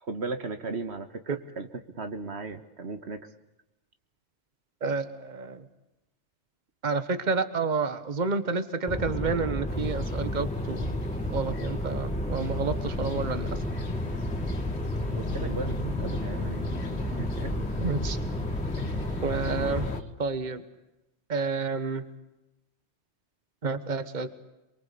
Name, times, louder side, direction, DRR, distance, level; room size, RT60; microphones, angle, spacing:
voice 1, 0.0-1.2 1.6-3.3 15.1-16.6 17.0-17.5 18.8-19.0 19.6-19.9, right 4 dB, 70° right, 9 dB, 1.8 m, -37 dB
voice 2, 4.8-5.6 6.8-10.9 11.3-13.5 17.8-18.2 19.2-19.8 20.2-20.6 21.3-22.0 23.6-24.3, right 4 dB, 40° right, 12 dB, 1.5 m, -29 dB
sound 1, 8.9-20.0, left 1 dB, 5° left, 1.8 m, -31 dB
sound 2, 9.7-20.0, left 4 dB, 70° left, 1.7 m, -39 dB
28.0 x 23.0 x 8.5 m, 0.95 s
omnidirectional pair, 1.2 m